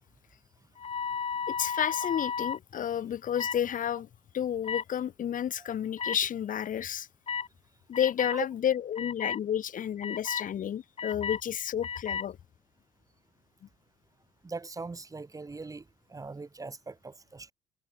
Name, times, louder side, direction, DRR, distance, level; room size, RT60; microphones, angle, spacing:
sound 1, 0.8-2.6 3.4-3.6 4.6-4.8 6.0-6.1 7.3-7.5 7.9-8.4 9.0-9.4 10.0-10.5 11.0-11.4 11.8-12.3, left 6 dB, 35° left, 3.3 m, -33 dB
voice 1, 1.5-4.1 4.3-7.1 7.9-12.4, left 9 dB, 50° left, 2.8 m, -31 dB
voice 2, 14.4-15.8 16.1-17.5, right 3 dB, 20° right, 3.7 m, -40 dB
cardioid pair, 110°, 17 cm